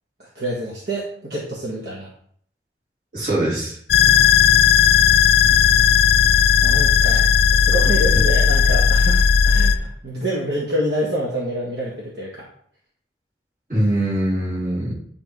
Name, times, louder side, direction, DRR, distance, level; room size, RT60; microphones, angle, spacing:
voice 1, 0.3-2.1 4.1-4.4 6.6-7.2 7.5-12.4, right 1 dB, 70° right, -5 dB, 1.6 m, -27 dB
voice 2, 3.1-3.8 5.4-5.5 7.0-7.2 13.7-14.9, right 1 dB, 45° right, -6 dB, 3.1 m, -23 dB
sound 1, 3.9-9.7, left 7 dB, 60° left, 0.5 m, -15 dB
9.8 x 3.7 x 4.7 m, 0.62 s
head